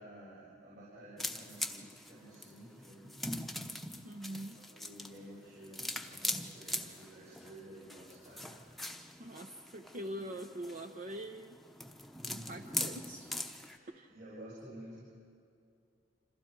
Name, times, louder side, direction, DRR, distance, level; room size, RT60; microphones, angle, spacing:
voice 1, 0.0-3.1 4.5-8.5 10.1-10.3 12.2-12.6 13.6-15.0, right 1 dB, 60° right, -8 dB, 7.7 m, -52 dB
sound 1, 1.2-13.8, left 1 dB, ahead, 0.9 m, -42 dB
voice 2, 4.0-4.6 9.2-11.6 12.3-13.3 13.9-14.1, right 1 dB, 45° right, 5 dB, 0.7 m, -44 dB
28.0 x 27.0 x 4.6 m, 2.4 s
head